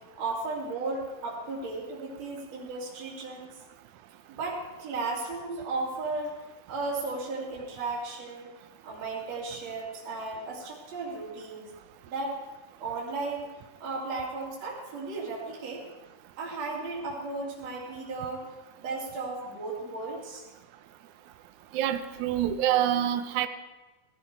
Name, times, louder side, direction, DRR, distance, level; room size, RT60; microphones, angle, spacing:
voice 1, 0.1-3.5 4.3-6.4 6.7-8.5 8.8-11.7 12.1-12.4 12.8-13.5 13.8-15.9 16.4-18.5 18.8-20.4, right 3 dB, 55° right, -4 dB, 3.7 m, -35 dB
voice 2, 21.7-23.5, right 11 dB, 75° right, 10 dB, 2.0 m, -26 dB
18.0 x 11.5 x 4.7 m, 1.2 s
omnidirectional pair, 3.8 m